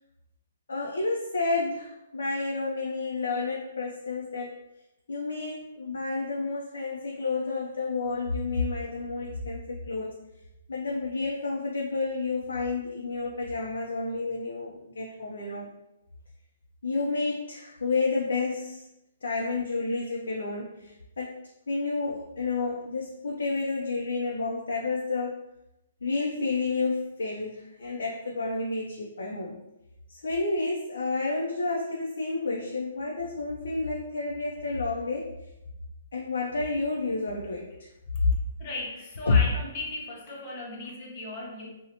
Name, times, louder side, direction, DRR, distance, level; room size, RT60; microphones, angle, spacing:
voice 1, 0.7-4.6 5.1-10.2 10.7-15.7 16.8-18.9 19.2-21.4 21.7-25.4 26.0-29.6 30.1-35.3 36.1-37.7 38.2-38.3 39.3-39.4, left 3 dB, 85° left, -2 dB, 0.4 m, -30 dB
voice 2, 38.6-41.8, left 2 dB, 40° left, -3 dB, 0.7 m, -37 dB
2.7 x 2.0 x 2.7 m, 0.89 s
hypercardioid pair, 140°, 0 cm